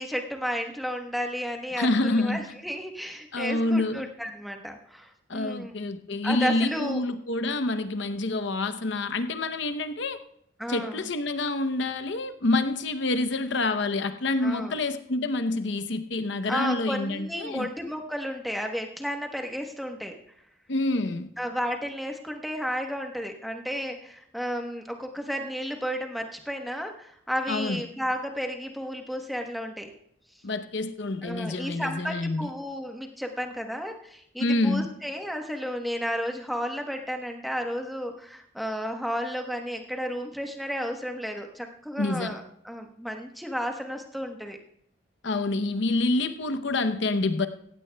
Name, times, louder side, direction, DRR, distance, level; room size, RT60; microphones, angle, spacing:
voice 1, 0.0-5.7 6.2-7.0 10.6-11.1 14.4-14.8 16.5-20.1 21.4-29.9 31.2-44.6, equal, ahead, 1.0 m, -33 dB
voice 2, 1.7-2.4 3.3-4.1 5.3-10.2 10.7-17.7 20.7-21.3 27.5-27.8 30.4-32.5 34.4-34.9 42.0-42.3 45.2-47.5, left 2 dB, 65° left, 0.7 m, -27 dB
16.0 x 16.0 x 2.3 m
head